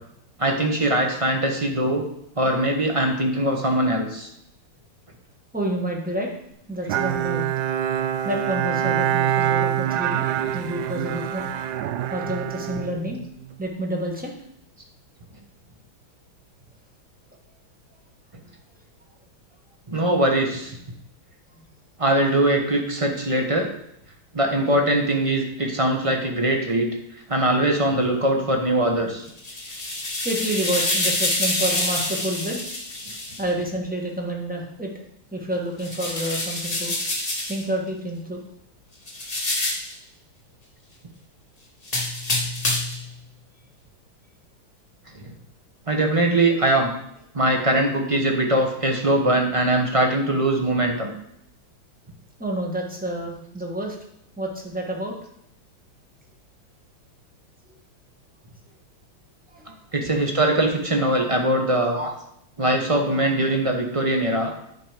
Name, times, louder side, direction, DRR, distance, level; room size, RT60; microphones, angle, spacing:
voice 1, 0.4-2.0 2.4-4.3 19.9-20.8 22.0-23.7 24.3-26.9 27.3-29.3 45.1-45.3 45.9-46.9 47.3-51.1 59.9-62.2 62.6-64.5, right 1 dB, 20° right, 2 dB, 0.9 m, -21 dB
voice 2, 5.5-6.3 6.7-7.5 8.2-10.3 10.5-11.5 12.1-13.2 13.6-14.3 21.6-21.7 30.2-32.6 33.4-34.9 35.3-37.0 37.4-38.4 52.4-54.0 54.4-55.2 59.5-59.8, right 1 dB, 5° right, 0 dB, 1.3 m, -29 dB
Bowed string instrument, 6.9-13.6, right 10 dB, 75° right, 0.9 m, -25 dB
sound 1, 29.3-33.4 35.8-37.6 39.1-39.9 41.8-43.0, left 2 dB, 20° left, 1.8 m, -26 dB
9.6 x 6.0 x 5.1 m, 0.74 s
omnidirectional pair, 2.2 m